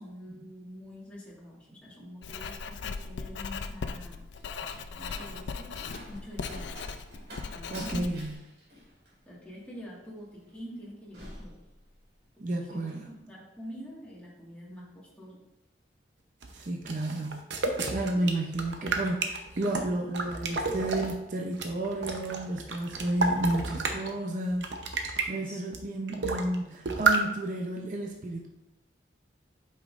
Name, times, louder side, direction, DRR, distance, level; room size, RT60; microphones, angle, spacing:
voice 1, 0.0-4.2 4.9-6.7 7.5-8.1 9.2-11.6 12.7-15.4 17.9-18.3 25.4-25.6, equal, 5° left, -6 dB, 1.7 m, -45 dB
Writing, 2.2-8.3, left 5 dB, 85° left, 0.4 m, -38 dB
Slam, 4.1-12.3 12.6-13.1, equal, 65° right, 2.2 m, -49 dB
voice 2, 7.7-8.3 12.4-13.0 16.5-17.4 17.7-24.7 25.0-28.5, right 1 dB, 45° right, 1 dB, 0.6 m, -32 dB
sound 1, 16.4-21.1 21.5-24.1 24.5-25.3 25.7-25.8 26.1-26.6 26.9-27.2, right 3 dB, 85° right, 0.8 m, -30 dB
8.2 x 5.4 x 2.5 m, 0.91 s
head